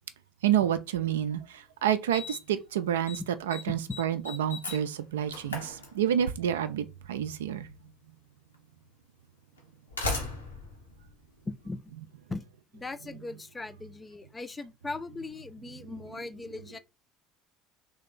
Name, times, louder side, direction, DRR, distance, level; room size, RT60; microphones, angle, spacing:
voice 1, 0.4-3.2 3.5-7.7, right 10 dB, 70° right, 0.4 m, -29 dB
Slam, 1.3-1.4 2.1-2.6 2.9-3.2 3.5-6.4 7.6-7.7 8.5-8.6 9.6-11.9, left 3 dB, 80° left, 1.0 m, -37 dB
voice 2, 3.7-4.0 11.4-11.8 12.3-12.4 12.7-16.8, left 3 dB, 20° left, 0.4 m, -39 dB
3.2 x 2.8 x 3.6 m
figure-of-eight pair, 65°, 0 cm